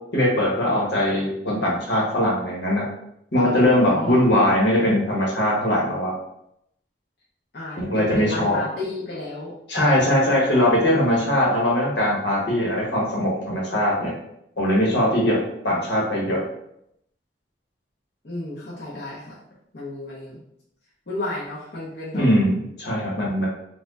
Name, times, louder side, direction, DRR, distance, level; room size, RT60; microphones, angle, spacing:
voice 1, 0.1-2.8 3.3-6.1 7.8-8.6 9.7-14.1 14.6-15.4 15.6-16.4 22.1-23.5, left 1 dB, 85° left, -4 dB, 1.3 m, -21 dB
voice 2, 3.4-4.2 7.5-9.5 18.2-19.4 19.7-20.4 21.1-22.2, left 2 dB, 60° left, -8 dB, 0.8 m, -31 dB
4.2 x 2.4 x 2.6 m, 0.76 s
head